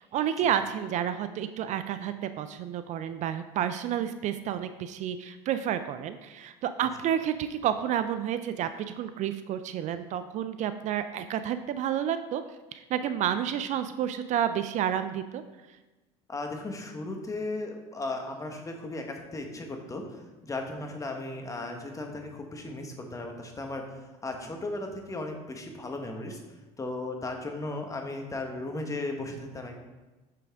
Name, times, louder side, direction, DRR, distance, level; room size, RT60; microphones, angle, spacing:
voice 1, 0.1-12.4 12.7-15.4, right 9 dB, 50° right, 11 dB, 0.4 m, -30 dB
voice 2, 16.3-23.8 24.2-26.4 26.8-29.8, left 2 dB, 20° left, 3 dB, 1.2 m, -36 dB
6.1 x 5.8 x 3.5 m, 1.1 s
supercardioid pair, 85°, 15 cm